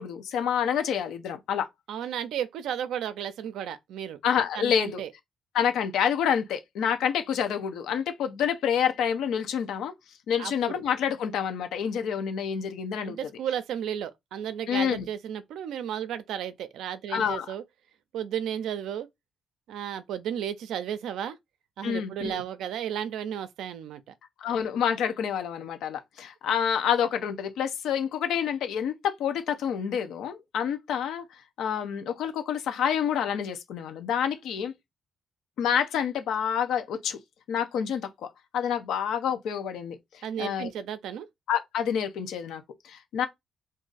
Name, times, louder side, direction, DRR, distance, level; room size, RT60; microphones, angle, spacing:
voice 1, 0.0-1.7 4.2-5.0 5.5-9.9 10.3-13.2 14.7-15.1 17.1-17.5 21.8-22.4 24.4-31.2 31.6-34.7 35.6-37.2 37.5-38.3 38.5-40.7 41.5-43.3, left 8 dB, 80° left, 0.7 m, -28 dB
voice 2, 1.9-4.2 4.5-5.1 10.4-10.8 13.0-17.6 18.1-19.1 19.7-21.4 21.8-24.0 40.2-41.3, right 9 dB, 80° right, 0.4 m, -33 dB
2.6 x 2.5 x 3.9 m
cardioid pair, 90°, 0 cm